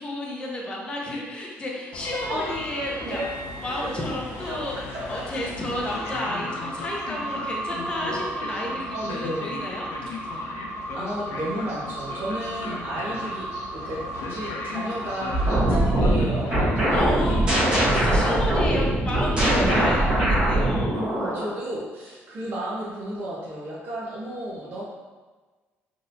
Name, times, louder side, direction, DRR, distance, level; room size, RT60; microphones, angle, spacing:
voice 1, 0.0-3.2 3.6-4.8 5.1-10.2 16.9-21.0, left 1 dB, 20° left, -3 dB, 0.6 m, -32 dB
Train, 1.9-17.4, left 3 dB, 80° left, 0.5 m, -37 dB
voice 2, 3.8-4.2 4.5-5.3 8.9-9.5 10.9-13.5 13.7-14.0 14.3-17.4 19.4-20.0 20.9-24.8, right 1 dB, 50° right, -7 dB, 0.8 m, -33 dB
sound 1, 5.9-15.7, right 2 dB, 80° right, 1.4 m, -35 dB
sound 2, 15.3-21.5, right 1 dB, 20° right, 1.2 m, -22 dB
3.8 x 2.8 x 2.6 m, 1.3 s
cardioid pair, 145°, 5 cm